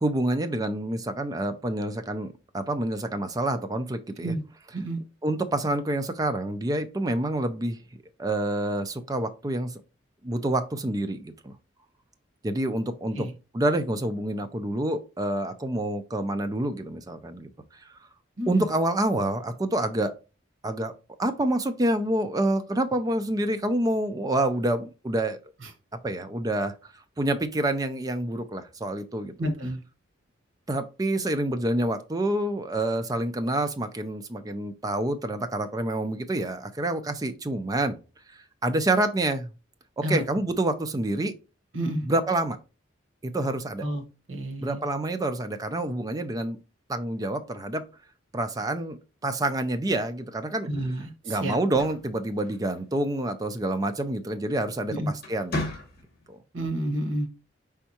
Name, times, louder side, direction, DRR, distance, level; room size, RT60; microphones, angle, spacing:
voice 1, 0.0-2.3 2.5-4.3 5.2-7.8 8.2-9.7 10.2-11.5 12.4-13.3 13.5-17.5 18.5-20.1 20.6-20.9 21.2-25.4 26.0-26.7 27.2-29.3 30.7-38.0 38.3-39.5 40.0-41.3 42.1-42.6 43.2-43.8 44.6-46.6 46.9-47.8 48.3-50.7 51.2-55.7 56.3-56.4, right 1 dB, 20° right, 8 dB, 0.4 m, -27 dB
voice 2, 29.4-29.8 40.0-40.2 41.7-42.1 43.8-44.0 44.3-44.8 50.7-51.6 54.9-55.1 56.5-57.3, right 1 dB, 75° right, 5 dB, 1.2 m, -29 dB
sound 1, 51.6-53.1 54.5-54.8 55.2-56.3, left 1 dB, 50° left, 1.2 m, -35 dB
5.3 x 3.5 x 2.9 m, 0.31 s
head